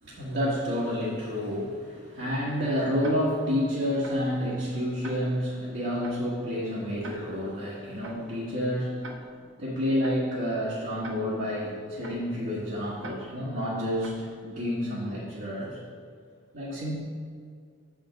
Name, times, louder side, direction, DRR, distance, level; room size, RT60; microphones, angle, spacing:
voice 1, 0.0-9.3 9.6-15.8 16.5-17.0, equal, 60° right, -9 dB, 1.5 m, -29 dB
Tick-tock, 3.0-3.1 4.0-4.1 5.0-5.1 6.0-6.1 7.0-7.1 8.0-8.1 9.0-9.1 10.0-10.1 11.0-11.1 12.0-12.1 13.0-13.1 14.0-14.1, right 3 dB, 85° right, 0.9 m, -42 dB
7.1 x 5.1 x 5.2 m, 2.2 s
head